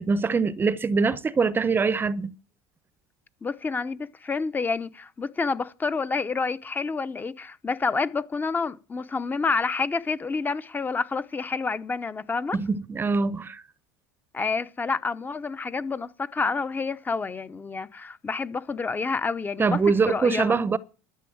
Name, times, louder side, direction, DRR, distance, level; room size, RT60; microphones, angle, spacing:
voice 1, 0.0-2.4 12.5-13.6 19.6-20.8, right 4 dB, 25° right, 0.8 m, -23 dB
voice 2, 3.4-12.6 14.3-19.8 20.1-20.6, left 4 dB, 20° left, 0.8 m, -28 dB
12.5 x 6.9 x 8.6 m
supercardioid pair, 100°, 9 cm